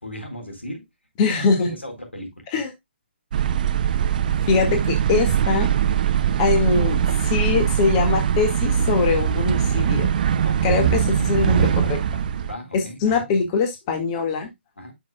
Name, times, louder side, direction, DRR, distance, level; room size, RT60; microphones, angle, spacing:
voice 1, 0.0-0.9 1.4-2.3 10.5-10.9 11.2-11.3 12.5-13.2 14.8-14.9, left 1 dB, 90° left, 3 dB, 3.9 m, -36 dB
voice 2, 1.2-1.7 2.5-2.7 4.4-5.7 6.4-10.1 10.6-12.0 12.7-14.5, left 5 dB, 30° left, 5 dB, 1.8 m, -22 dB
sound 1, 3.3-12.5, right 8 dB, 45° right, 0.6 m, -21 dB
10.5 x 6.2 x 2.2 m, 0.18 s
figure-of-eight pair, 135°, 6 cm